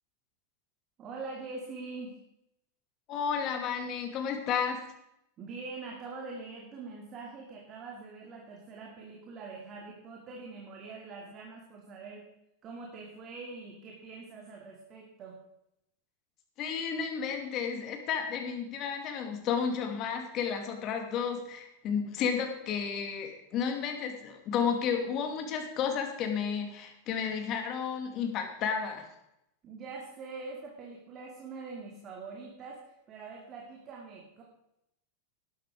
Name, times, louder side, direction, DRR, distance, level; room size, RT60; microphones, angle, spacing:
voice 1, 1.0-2.2 5.4-12.3 12.6-15.4 29.6-34.4, right 4 dB, 35° right, 0 dB, 2.5 m, -44 dB
voice 2, 3.1-4.8 16.6-29.0, left 7 dB, 40° left, 4 dB, 2.7 m, -32 dB
12.0 x 11.5 x 5.2 m, 0.83 s
supercardioid pair, 135°, 0 cm